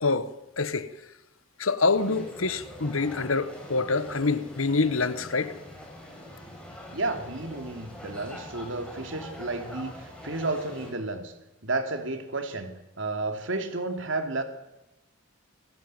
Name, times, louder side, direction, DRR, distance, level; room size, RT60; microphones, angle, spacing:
voice 1, 0.0-0.9 1.6-5.6, left 3 dB, 85° left, 1.5 m, -26 dB
sound 1, 1.9-10.9, equal, 5° left, 7.3 m, -44 dB
voice 2, 6.9-11.3 11.6-14.4, right 2 dB, 65° right, 3.1 m, -32 dB
28.0 x 16.0 x 9.2 m
head